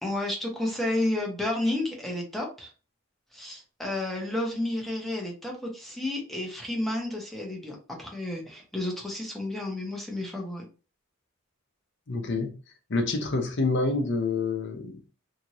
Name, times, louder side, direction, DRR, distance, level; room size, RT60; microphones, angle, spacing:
voice 1, 0.0-2.7 3.3-10.7, left 1 dB, ahead, 0.8 m, -31 dB
voice 2, 12.1-12.5 12.9-15.0, left 3 dB, 60° left, 0.7 m, -27 dB
2.8 x 2.5 x 2.9 m
head